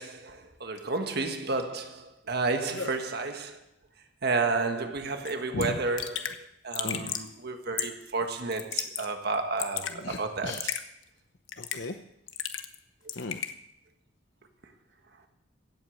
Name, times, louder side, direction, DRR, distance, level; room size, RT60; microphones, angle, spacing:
voice 1, 0.0-3.6 4.2-10.7, right 3 dB, 55° right, 1.5 m, -31 dB
Raindrop / Drip, 5.3-5.4 5.6-5.7 6.0-6.4 6.7-7.3 7.8-8.1 8.5-9.1 9.3-9.9 10.5-10.8 11.5-11.9 12.3-12.8 13.1-13.5, left 9 dB, 85° left, 1.1 m, -33 dB
voice 2, 6.8-7.2 9.9-10.7 11.6-12.0 13.2-13.5, left 3 dB, 65° left, 0.8 m, -36 dB
16.5 x 8.4 x 7.8 m
head